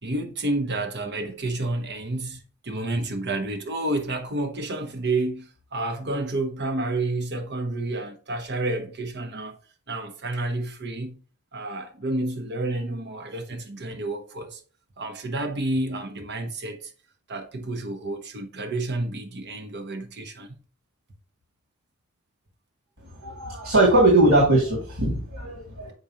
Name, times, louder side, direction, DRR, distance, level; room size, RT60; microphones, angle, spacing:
voice 1, 0.0-9.6 9.9-11.2 11.5-14.6 15.0-16.9 17.3-20.5, right 2 dB, 50° right, 1.2 m, -30 dB
voice 2, 23.2-25.9, right 2 dB, 75° right, 2.2 m, -20 dB
6.7 x 5.1 x 2.9 m
head